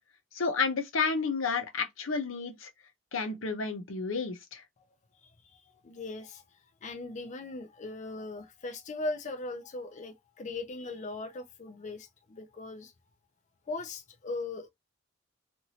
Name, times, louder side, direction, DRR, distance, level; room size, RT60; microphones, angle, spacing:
voice 1, 0.3-2.7 3.1-4.6, left 4 dB, 90° left, 0.8 m, -31 dB
voice 2, 5.2-6.4 6.8-12.9 13.7-14.7, left 2 dB, 40° left, 0.4 m, -39 dB
2.9 x 2.6 x 2.8 m
head